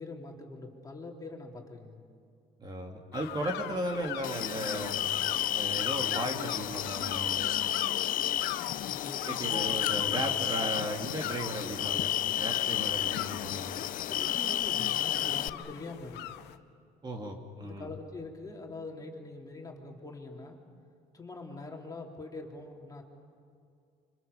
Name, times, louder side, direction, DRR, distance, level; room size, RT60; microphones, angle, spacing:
voice 1, 0.0-2.0 8.6-9.9 14.1-16.4 17.6-20.6 21.1-23.0, left 3 dB, 20° left, 0 dB, 3.4 m, -44 dB
voice 2, 2.6-5.0 5.5-7.5 9.3-12.1 12.4-13.8 17.0-17.9, right 1 dB, 25° right, 2 dB, 2.7 m, -36 dB
sound 1, 3.1-16.6, left 13 dB, 85° left, 1.0 m, -42 dB
sound 2, 4.2-15.5, left 12 dB, 55° left, 0.5 m, -31 dB
26.0 x 25.5 x 6.9 m, 2.4 s
cardioid pair, 110°, 17 cm